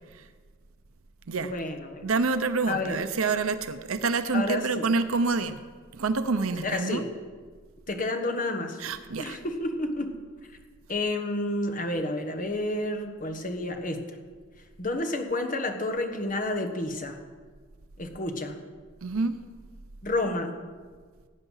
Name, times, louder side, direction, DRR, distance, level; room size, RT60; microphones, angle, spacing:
voice 1, 1.4-2.1 2.7-3.0 4.3-4.8 6.6-7.1 7.9-8.8 9.2-10.2 10.9-14.0 14.8-17.2 18.0-18.6 20.0-20.5, left 2 dB, 40° left, 5 dB, 1.4 m, -30 dB
voice 2, 2.0-5.6 5.9-7.0 8.8-9.4 19.0-19.4, right 4 dB, 85° right, 10 dB, 0.7 m, -27 dB
17.0 x 9.2 x 5.6 m, 1.5 s
head